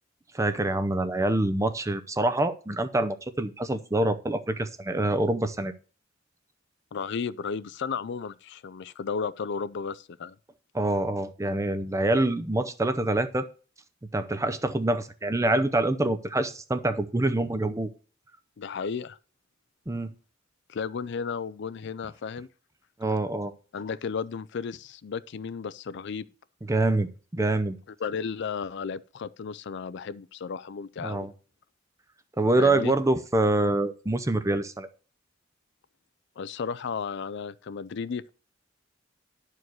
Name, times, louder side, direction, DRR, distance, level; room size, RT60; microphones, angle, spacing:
voice 1, 0.3-5.7 10.7-13.5 14.1-17.9 19.9-20.1 23.0-23.5 26.7-27.8 31.0-31.3 32.4-34.9, right 2 dB, 15° right, 0.6 m, -26 dB
voice 2, 6.9-10.3 18.6-19.2 20.7-22.5 23.7-26.3 28.0-31.3 32.6-32.9 36.4-38.3, left 6 dB, 60° left, 0.4 m, -34 dB
11.0 x 4.7 x 6.2 m
head